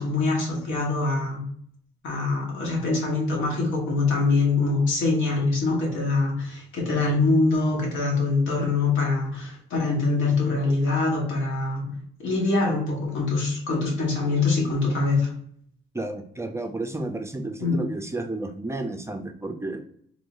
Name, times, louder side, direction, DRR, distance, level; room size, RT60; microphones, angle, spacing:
voice 1, 0.0-1.4 2.0-15.3 17.6-17.8, left 3 dB, 80° left, 0 dB, 1.4 m, -24 dB
voice 2, 15.9-19.8, right 2 dB, 15° right, 5 dB, 0.5 m, -32 dB
3.6 x 3.0 x 2.6 m, 0.64 s
cardioid pair, 90°, 20 cm